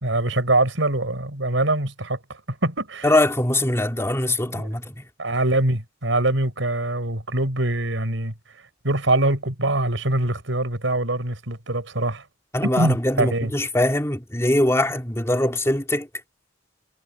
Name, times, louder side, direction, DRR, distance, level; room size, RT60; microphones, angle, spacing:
voice 1, 0.0-2.2 2.6-3.1 4.4-4.7 5.2-8.3 8.8-12.2 12.6-13.5, right 2 dB, 85° right, 4.8 m, -23 dB
voice 2, 3.0-4.8 12.5-16.1, left 1 dB, 15° left, 2.7 m, -22 dB
head